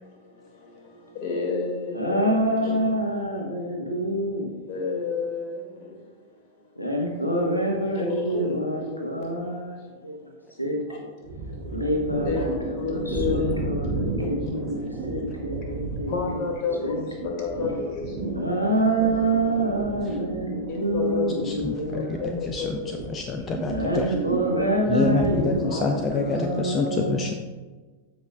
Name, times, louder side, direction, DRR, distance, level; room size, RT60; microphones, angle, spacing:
voice 1, 0.0-2.3 2.6-2.7 4.7-6.6 7.9-8.6 9.2-9.4 10.9-11.0 11.6-11.8 12.2-13.5 13.9-14.3 14.9-15.0 15.3-18.3 20.7-21.4 21.9-23.3 25.4-26.1, left 5 dB, 45° left, 0 dB, 2.1 m, -32 dB
voice 2, 1.9-4.8 6.7-10.1 10.6-10.9 11.7-17.3 18.2-22.2 23.6-27.3, right 1 dB, 85° left, 1 dB, 1.2 m, -27 dB
sound 1, 11.2-26.6, right 2 dB, 60° right, 2.3 m, -33 dB
voice 3, 21.5-21.8 22.5-22.8 23.1-24.1 24.9-27.3, left 4 dB, 25° left, 5 dB, 0.5 m, -27 dB
13.5 x 5.2 x 2.3 m, 1.3 s
figure-of-eight pair, 90°, 0 cm